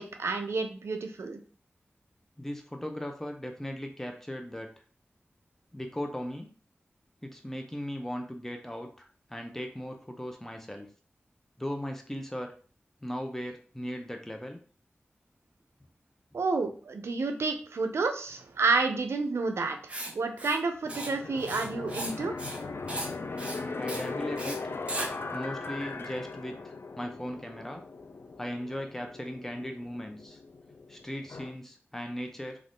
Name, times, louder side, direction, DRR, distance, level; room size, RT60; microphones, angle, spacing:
voice 1, 0.0-1.4 16.3-22.3, right 3 dB, 85° right, 6 dB, 0.5 m, -30 dB
voice 2, 2.4-4.7 5.7-6.5 7.2-10.9 11.6-12.5 13.0-14.6 23.8-24.7 25.3-27.8 28.4-30.4 30.9-32.6, equal, 10° left, 4 dB, 0.5 m, -38 dB
Writing, 19.9-20.1 20.4-20.6 20.9-21.1 21.4-22.1 22.4-22.6 22.9-23.1 23.4-23.6 23.9-24.1 24.4-24.6 24.9-25.1, right 1 dB, 25° right, 0.7 m, -36 dB
sound 1, 20.8-31.5, left 3 dB, 60° left, 0.4 m, -39 dB
2.6 x 2.4 x 3.4 m, 0.41 s
cardioid pair, 50°, 4 cm